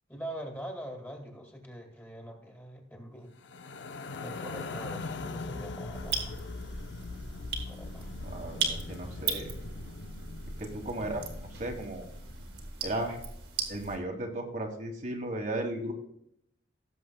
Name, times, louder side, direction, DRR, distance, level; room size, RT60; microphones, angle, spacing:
voice 1, 0.1-3.3 4.2-6.4 7.7-8.1, right 1 dB, 10° left, 1 dB, 2.0 m, -43 dB
sound 1, 3.4-12.7, left 3 dB, 80° left, 0.6 m, -41 dB
sound 2, 5.9-14.0, right 4 dB, 65° right, 1.9 m, -38 dB
voice 2, 8.2-9.5 10.6-11.2 11.6-12.1 12.8-13.2 13.7-15.9, right 1 dB, 45° right, 2 dB, 1.4 m, -35 dB
17.0 x 7.4 x 2.3 m, 0.75 s
head